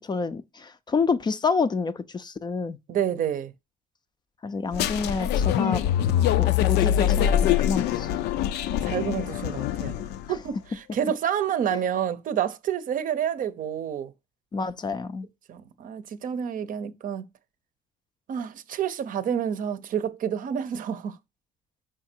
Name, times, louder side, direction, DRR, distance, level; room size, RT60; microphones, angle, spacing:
voice 1, 0.1-2.8 4.4-5.8 6.4-8.1 14.5-15.3, left 4 dB, 25° left, 0.4 m, -28 dB
voice 2, 2.9-3.5 8.7-10.0 10.3-14.1 15.5-17.2 18.3-21.2, right 9 dB, 55° right, 0.7 m, -29 dB
sound 1, 4.7-10.3, left 11 dB, 80° left, 0.5 m, -24 dB
5.0 x 4.8 x 4.4 m
cardioid pair, 110°, 17 cm